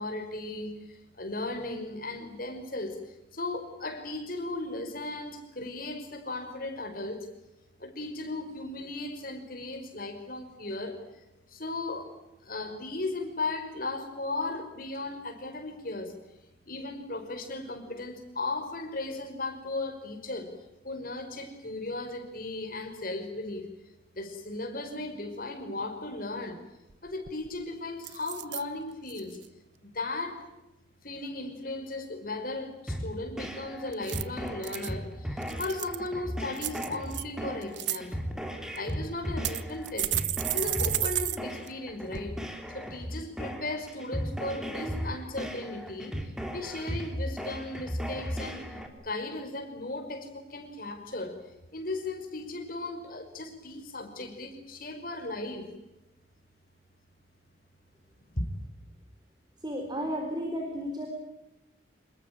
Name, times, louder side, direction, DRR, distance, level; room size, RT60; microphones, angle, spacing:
voice 1, 0.0-3.0 3.3-7.3 7.8-11.0 11.5-12.1 12.4-16.2 16.7-20.5 20.8-23.7 24.1-26.6 27.0-29.4 29.8-30.4 31.0-38.2 38.7-40.2 40.5-42.4 42.7-48.6 49.0-51.4 51.7-55.7 58.3-58.5, left 2 dB, 50° left, 5 dB, 5.5 m, -36 dB
sound 1, 26.9-27.0 27.3-27.6 28.0-28.6 29.1-29.5 33.9-34.9 35.4-36.1 36.6-37.2 37.6-38.0 38.8-38.9 39.4-41.4 41.7-41.8 42.1-42.2, right 14 dB, 85° right, 1.1 m, -32 dB
sound 2, 32.9-48.9, equal, 5° right, 3.6 m, -36 dB
voice 2, 59.6-61.1, equal, 25° right, 3 dB, 4.3 m, -33 dB
27.5 x 21.5 x 9.0 m, 0.96 s
head